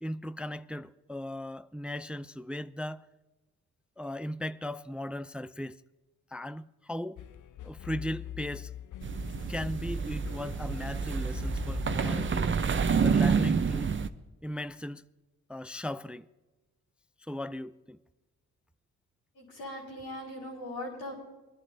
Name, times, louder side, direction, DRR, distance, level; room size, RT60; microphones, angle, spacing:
voice 1, 0.0-3.1 4.0-5.8 6.3-7.2 7.6-8.7 9.5-12.5 13.0-13.9 14.4-15.0 15.5-16.3 17.3-18.0, left 1 dB, 5° right, 0.3 m, -37 dB
sound 1, 7.2-12.3, left 10 dB, 60° left, 0.6 m, -43 dB
sound 2, 9.0-14.1, right 6 dB, 35° right, 0.7 m, -28 dB
voice 2, 19.3-21.1, left 1 dB, 90° left, 5.2 m, -40 dB
23.5 x 11.0 x 2.7 m
supercardioid pair, 45°, 36 cm